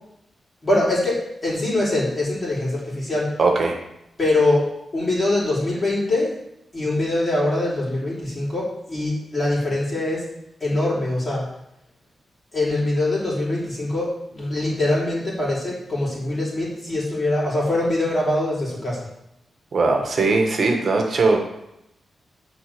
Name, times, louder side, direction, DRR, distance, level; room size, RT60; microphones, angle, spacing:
voice 1, 0.6-3.3 4.2-4.7 4.9-6.3 6.7-10.2 10.6-11.5 12.5-19.0, left 2 dB, 25° left, -6 dB, 3.6 m, -23 dB
voice 2, 3.4-3.7 19.7-21.4, right 3 dB, 40° right, 2 dB, 1.6 m, -19 dB
10.0 x 4.1 x 6.9 m, 0.83 s
wide cardioid pair, 175°, 0 cm